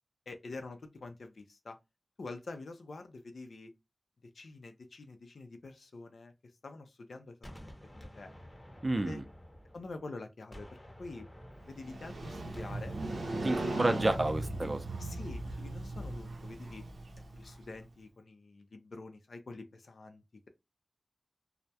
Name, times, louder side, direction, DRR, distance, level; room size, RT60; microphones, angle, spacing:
voice 1, 0.3-1.8 2.2-3.7 4.2-6.3 6.6-7.4 7.6-8.3 9.0-9.2 9.7-11.3 11.6-13.0 13.6-13.8 14.6-14.7 15.0-16.8 17.1-20.5, left 3 dB, 80° left, 0.4 m, -47 dB
Gunshot gunfire, 7.4-10.1 10.5-14.1, equal, 15° left, 0.7 m, -51 dB
voice 2, 8.8-9.2 13.4-14.8, right 2 dB, 35° right, 0.4 m, -30 dB
Motorcycle, 11.7-17.6, right 2 dB, 90° right, 0.5 m, -38 dB
2.2 x 2.0 x 2.7 m
wide cardioid pair, 55°, 0 cm